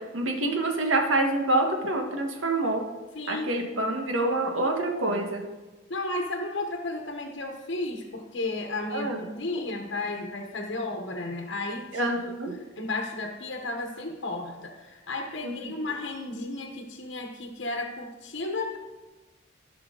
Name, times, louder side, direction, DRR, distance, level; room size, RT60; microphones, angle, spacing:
voice 1, 0.0-2.8 3.3-5.4 8.9-9.2 11.9-12.6 15.4-15.7, right 2 dB, 90° right, 3 dB, 1.5 m, -27 dB
voice 2, 3.1-3.9 5.9-12.0 12.8-18.8, left 2 dB, 65° left, 3 dB, 1.0 m, -33 dB
15.5 x 5.7 x 3.8 m, 1.2 s
head